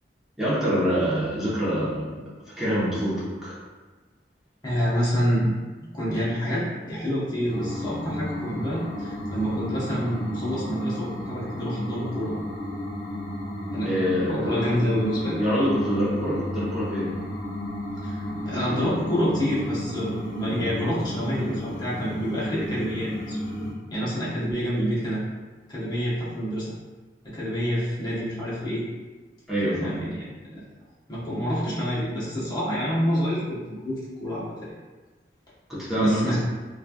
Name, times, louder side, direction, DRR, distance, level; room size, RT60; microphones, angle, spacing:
voice 1, 0.4-2.2 2.6-3.6 13.8-14.7 15.4-17.1 29.5-30.0 35.7-36.4, equal, 5° right, -11 dB, 1.0 m, -25 dB
voice 2, 4.6-5.5 5.9-12.4 13.7-13.9 14.3-15.4 18.0-23.4 23.9-25.2 25.7-26.7 27.2-28.8 29.6-30.2 30.5-30.6 31.1-34.7 35.9-36.4, equal, 25° left, -9 dB, 1.0 m, -27 dB
sound 1, 7.5-23.7, left 1 dB, 75° left, 0.6 m, -33 dB
3.1 x 2.4 x 2.3 m, 1.3 s
head